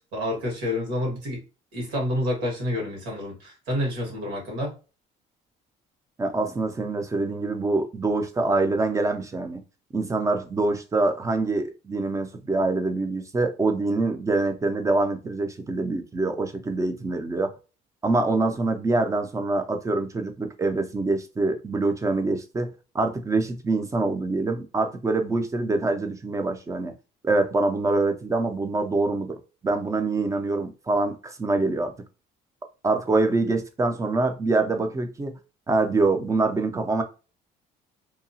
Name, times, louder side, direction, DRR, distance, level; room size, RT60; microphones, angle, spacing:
voice 1, 0.1-1.4 1.7-4.7, left 1 dB, 85° right, 1.5 m, -28 dB
voice 2, 6.2-9.6 9.9-17.5 18.0-26.9 27.2-31.9 32.8-35.4 35.7-37.0, right 3 dB, 20° right, 0.5 m, -25 dB
2.8 x 2.3 x 2.7 m
cardioid pair, 110°, 17 cm